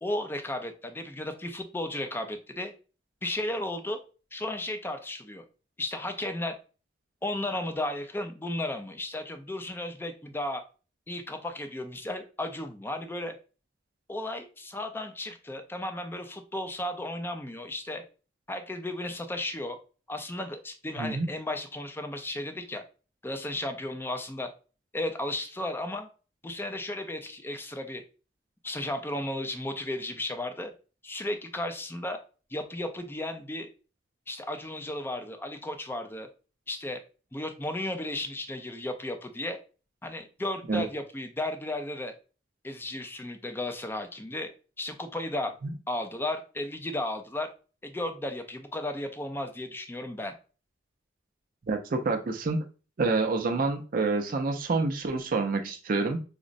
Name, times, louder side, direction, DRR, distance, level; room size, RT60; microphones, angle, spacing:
voice 1, 0.0-2.7 3.2-4.0 4.3-5.4 5.8-6.5 7.2-10.6 11.1-13.4 14.1-18.0 18.5-19.8 20.1-22.8 23.2-24.5 24.9-26.1 26.4-28.0 28.6-30.7 31.0-32.2 32.5-33.7 34.3-36.3 36.7-37.0 37.3-39.6 40.0-42.1 42.6-44.5 44.8-45.5 45.9-47.5 47.8-50.3, left 1 dB, 10° left, 6 dB, 0.4 m, -34 dB
voice 2, 51.7-52.6 53.0-56.2, right 3 dB, 50° right, 4 dB, 0.4 m, -27 dB
4.9 x 2.0 x 2.5 m, 0.34 s
head